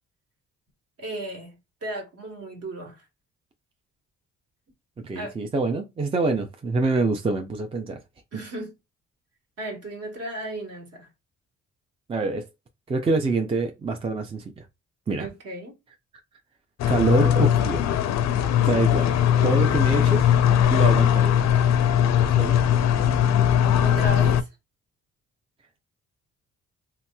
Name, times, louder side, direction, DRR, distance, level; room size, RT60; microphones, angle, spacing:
voice 1, 1.0-3.0 5.1-5.3 8.3-8.7 9.6-11.1 15.2-15.7 23.8-24.5, right 1 dB, 50° right, 1.3 m, -35 dB
voice 2, 5.0-8.0 12.1-12.5 12.9-14.7 15.1-15.3 16.9-17.9 18.6-19.2 19.4-20.3 20.7-21.3 22.2-22.6, right 3 dB, 20° right, 0.4 m, -25 dB
sound 1, 16.8-24.4, left 9 dB, 65° left, 0.4 m, -20 dB
2.8 x 2.8 x 2.2 m
cardioid pair, 90°, 30 cm